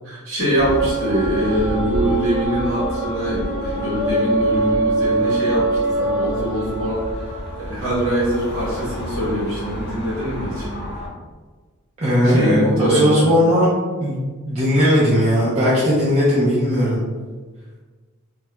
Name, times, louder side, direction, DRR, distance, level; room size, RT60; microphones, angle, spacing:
voice 1, 0.0-7.0 7.6-10.7 12.2-13.3, right 1 dB, 60° right, -6 dB, 1.0 m, -23 dB
sound 1, 0.6-11.1, right 1 dB, 45° left, 0.6 m, -25 dB
voice 2, 12.0-13.7 14.0-17.0, equal, 30° right, -8 dB, 0.4 m, -18 dB
2.2 x 2.2 x 2.9 m, 1.4 s
head